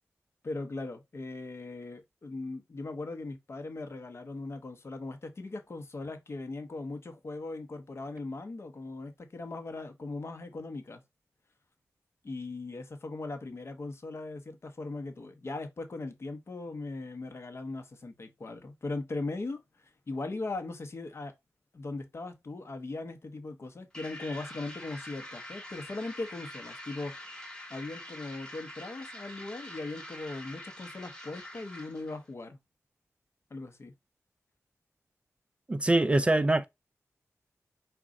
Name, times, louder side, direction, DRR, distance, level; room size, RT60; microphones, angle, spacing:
voice 1, 0.4-11.0 12.2-21.3 21.7-27.4 27.7-32.6 33.5-33.9, left 2 dB, 50° left, 0.9 m, -39 dB
sound 1, 23.9-32.2, left 1 dB, 15° left, 1.3 m, -45 dB
voice 2, 35.7-36.7, right 2 dB, 20° right, 0.3 m, -24 dB
5.1 x 2.4 x 3.7 m
wide cardioid pair, 95°, 5 cm